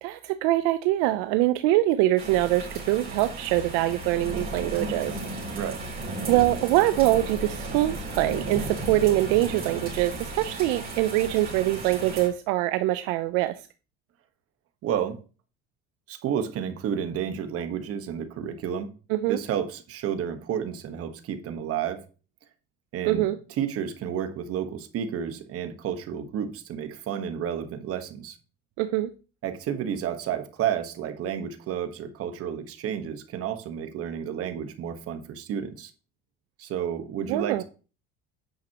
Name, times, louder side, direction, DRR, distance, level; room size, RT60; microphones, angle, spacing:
voice 1, 0.0-5.2 6.3-13.5 19.1-19.4 23.0-23.4 28.8-29.1 37.3-37.6, right 16 dB, 80° right, 0.6 m, -24 dB
sound 1, 2.2-12.3, right 2 dB, 30° right, 4.1 m, -35 dB
voice 2, 14.8-15.2 16.1-18.9 19.3-22.0 22.9-28.4 29.4-35.9 36.6-37.6, right 8 dB, 50° right, 1.3 m, -31 dB
9.3 x 5.9 x 2.9 m
supercardioid pair, 115°, 30 cm